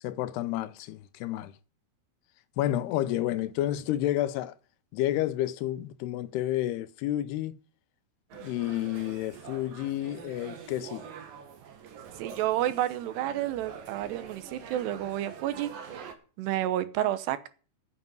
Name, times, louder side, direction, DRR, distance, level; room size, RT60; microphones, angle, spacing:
voice 1, 0.0-1.5 2.6-4.5 4.9-7.6 8.3-11.1, left 13 dB, 80° left, 2.8 m, -30 dB
sound 1, 8.3-16.1, right 7 dB, 60° right, 3.4 m, -45 dB
voice 2, 12.2-15.7 16.4-17.5, right 13 dB, 90° right, 3.2 m, -30 dB
9.6 x 8.7 x 9.4 m
omnidirectional pair, 4.7 m